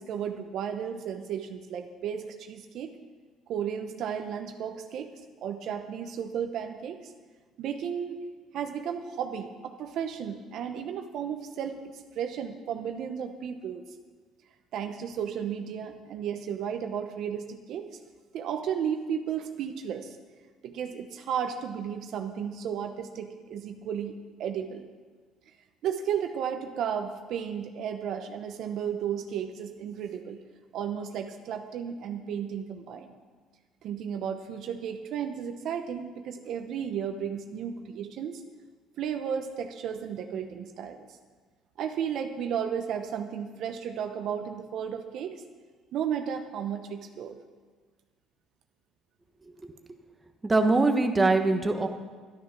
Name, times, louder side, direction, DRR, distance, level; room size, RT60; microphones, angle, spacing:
voice 1, 0.0-2.9 3.5-5.1 5.4-7.1 7.6-8.2 8.5-13.9 14.7-17.9 18.3-20.2 20.6-24.9 25.8-30.4 30.7-33.1 33.8-38.4 39.0-41.2 41.8-45.3 45.9-47.4, right 8 dB, 65° right, 6 dB, 0.9 m, -34 dB
voice 2, 50.4-51.9, right 3 dB, 15° right, 5 dB, 1.3 m, -23 dB
12.0 x 10.0 x 5.9 m, 1.5 s
supercardioid pair, 85°, 0 cm